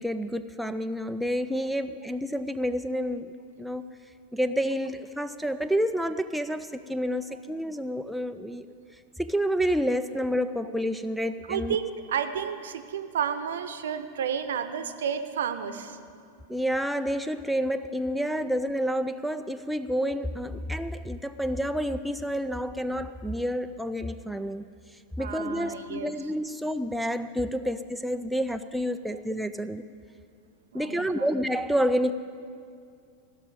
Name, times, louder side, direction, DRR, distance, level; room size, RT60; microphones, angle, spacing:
voice 1, 0.0-3.3 3.6-3.8 4.3-8.7 9.2-11.8 16.5-24.6 25.2-29.8 30.7-32.1, equal, ahead, 7 dB, 0.4 m, -29 dB
voice 2, 11.5-16.0 25.2-26.1 30.7-31.3, right 8 dB, 60° right, 10 dB, 0.8 m, -31 dB
16.0 x 6.4 x 9.4 m, 2.3 s
figure-of-eight pair, 90°, 0 cm